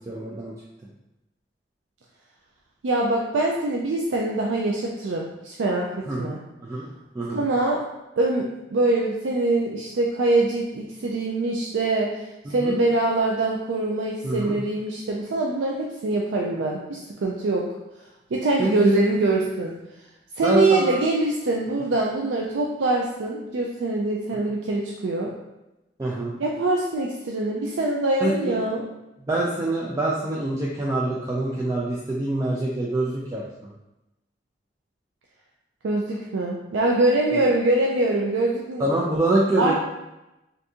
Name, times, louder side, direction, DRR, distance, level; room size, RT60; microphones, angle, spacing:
voice 1, 0.1-0.5 6.1-6.3 6.6-6.9 7.1-7.5 12.5-12.7 14.2-14.5 18.6-19.0 20.4-21.0 24.3-24.4 26.0-26.3 28.2-28.6 29.3-33.7 37.3-37.4 38.8-39.7, right 1 dB, 20° right, -5 dB, 0.3 m, -25 dB
voice 2, 2.8-6.4 7.3-7.8 8.2-8.4 8.7-12.1 12.5-17.6 18.3-19.8 20.4-25.3 26.4-28.8 35.8-38.8 39.6-39.7, right 2 dB, 90° right, -2 dB, 0.4 m, -24 dB
3.5 x 2.6 x 2.7 m, 0.97 s
head